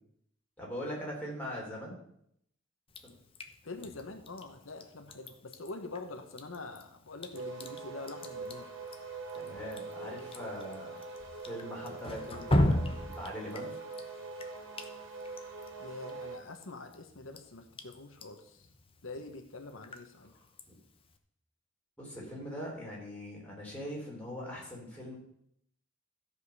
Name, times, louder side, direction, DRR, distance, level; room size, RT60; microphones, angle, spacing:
voice 1, 0.6-2.0 3.0-3.1 9.3-11.0 11.4-13.8 20.3-20.8 22.0-25.2, equal, 5° left, -4 dB, 3.7 m, -41 dB
Drip, 2.9-21.2, left 1 dB, 30° left, 0.9 m, -38 dB
voice 2, 3.6-8.7 15.8-18.7 19.0-20.3, left 3 dB, 80° left, 5 dB, 1.1 m, -45 dB
sound 1, 7.3-16.4, right 4 dB, 80° right, 2.5 m, -43 dB
13.5 x 5.2 x 6.6 m, 0.72 s
head